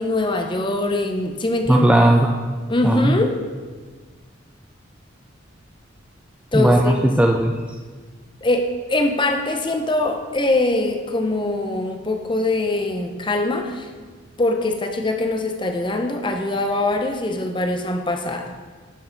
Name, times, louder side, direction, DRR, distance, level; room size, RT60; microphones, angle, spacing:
voice 1, 0.0-1.8 2.7-3.3 6.5-6.9 8.4-13.9 14.4-18.5, left 2 dB, 25° left, 5 dB, 0.7 m, -22 dB
voice 2, 1.7-2.5 2.8-3.2 6.5-7.6, right 1 dB, 5° right, 1 dB, 0.4 m, -17 dB
11.5 x 6.6 x 4.0 m, 1.4 s
head